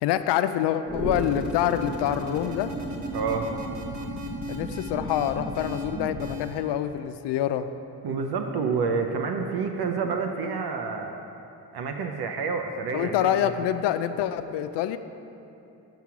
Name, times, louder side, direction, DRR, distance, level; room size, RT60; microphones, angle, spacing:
voice 1, 0.0-2.7 4.5-7.7 12.9-15.0, left 11 dB, 80° left, 10 dB, 0.5 m, -26 dB
sound 1, 0.8-6.6, equal, 40° right, 1.7 m, -34 dB
voice 2, 3.1-3.5 8.0-11.2 11.7-13.5, right 5 dB, 65° right, 4 dB, 0.8 m, -28 dB
7.4 x 5.9 x 5.8 m, 2.8 s
supercardioid pair, 50°, 41 cm